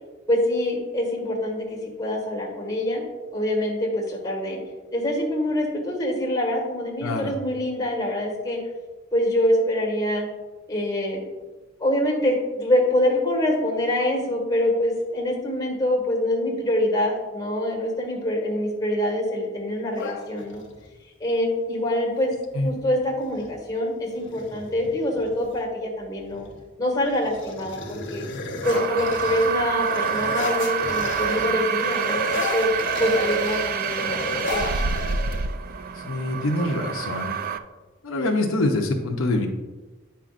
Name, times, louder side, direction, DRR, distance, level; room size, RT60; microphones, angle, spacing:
voice 1, 0.3-3.0 3.3-4.6 4.9-8.6 9.1-10.3 10.7-11.2 11.8-20.6 21.2-22.3 22.6-26.5 26.8-28.2 28.6-32.2 32.5-32.7 33.0-34.7, left 1 dB, 20° left, -2 dB, 1.8 m, -25 dB
sound 1, 19.9-20.9 22.6-22.7 23.0-23.5 24.1-25.6 26.2-26.6 27.0-31.5 31.8-35.7, left 2 dB, 60° left, 1.1 m, -32 dB
sound 2, 28.6-37.6, right 7 dB, 45° right, 0.3 m, -27 dB
voice 2, 36.0-37.3 38.0-39.5, left 2 dB, 80° left, 2 dB, 0.8 m, -24 dB
9.1 x 5.7 x 2.5 m, 1.2 s
head